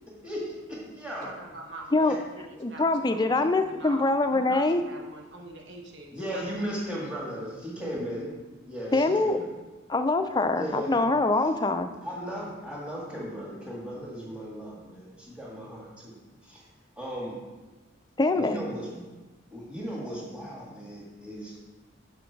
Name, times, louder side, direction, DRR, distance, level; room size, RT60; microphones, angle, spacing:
voice 1, 0.2-1.3 2.0-2.2 6.1-8.3 8.7-9.5 10.5-11.0 12.0-16.1 16.4-16.7 17.0-17.4 18.3-19.0 19.5-21.6, equal, 5° right, -5 dB, 1.9 m, -36 dB
voice 2, 1.2-6.4, right 2 dB, 65° right, 0 dB, 1.0 m, -44 dB
voice 3, 2.6-4.8 8.9-9.4 9.9-11.9 18.2-18.6, left 2 dB, 20° left, 8 dB, 0.3 m, -24 dB
6.2 x 5.7 x 4.6 m, 1.2 s
head